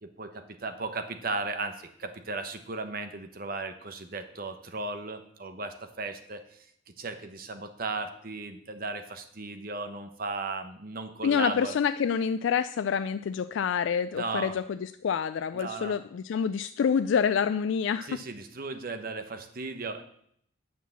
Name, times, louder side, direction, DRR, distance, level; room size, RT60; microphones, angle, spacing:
voice 1, 0.0-6.7 7.0-11.8 14.1-14.6 15.5-16.0 18.0-20.0, right 3 dB, 45° right, 8 dB, 1.0 m, -36 dB
voice 2, 11.2-18.2, left 7 dB, 70° left, 12 dB, 0.3 m, -27 dB
9.5 x 5.9 x 7.0 m, 0.67 s
head